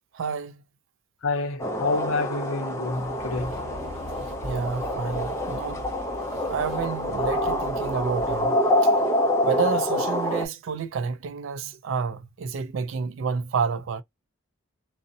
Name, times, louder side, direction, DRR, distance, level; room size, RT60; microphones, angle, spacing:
voice 1, 0.1-0.5 4.4-5.9 6.5-8.5 8.8-8.9 9.4-14.0, right 5 dB, 60° right, 0.3 m, -29 dB
voice 2, 1.2-3.6, left 3 dB, 65° left, 0.6 m, -28 dB
sound 1, 1.6-10.5, left 1 dB, 15° left, 0.4 m, -26 dB
sound 2, 2.7-8.5, equal, 30° right, 0.7 m, -41 dB
2.5 x 2.0 x 2.6 m
head